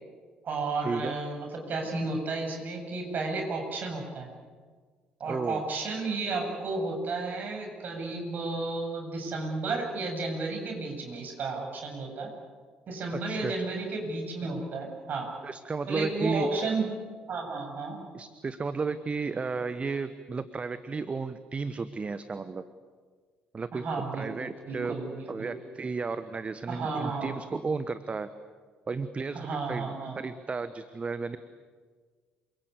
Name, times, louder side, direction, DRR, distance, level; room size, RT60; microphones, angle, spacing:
voice 1, 0.4-4.3 5.2-12.3 12.9-15.3 15.9-16.9 17.3-18.0 23.7-24.3 24.7-25.5 26.7-27.3 29.3-30.2, right 3 dB, 45° right, 2 dB, 7.9 m, -32 dB
voice 2, 5.3-5.6 13.1-13.7 15.4-16.5 18.1-22.6 23.5-23.8 24.2-25.0 25.3-28.3 28.9-29.9 30.2-31.4, right 4 dB, 25° right, 12 dB, 1.2 m, -33 dB
28.0 x 24.0 x 8.4 m, 1.5 s
figure-of-eight pair, 50°, 4 cm